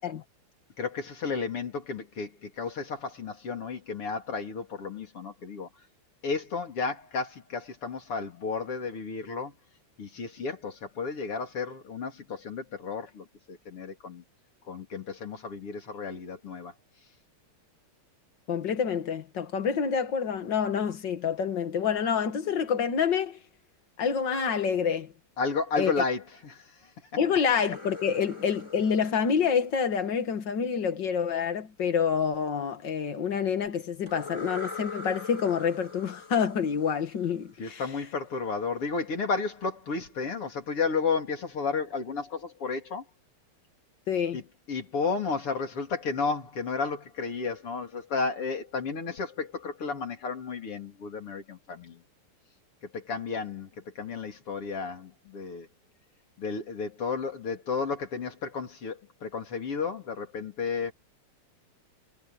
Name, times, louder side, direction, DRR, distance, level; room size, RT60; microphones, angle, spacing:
voice 1, 0.8-5.7 6.2-9.5 10.0-14.2 14.7-16.7 25.4-26.7 37.6-43.0 44.3-44.4 44.7-52.0 52.9-55.7 56.4-60.9, left 4 dB, 85° left, 4.6 m, -32 dB
voice 2, 18.5-23.4 24.0-25.1 25.8-25.9 27.2-37.8 44.1-44.4, left 7 dB, 55° left, 2.3 m, -27 dB
sound 1, 27.4-30.4 34.1-37.8, left 4 dB, 10° left, 4.2 m, -42 dB
omnidirectional pair, 2.4 m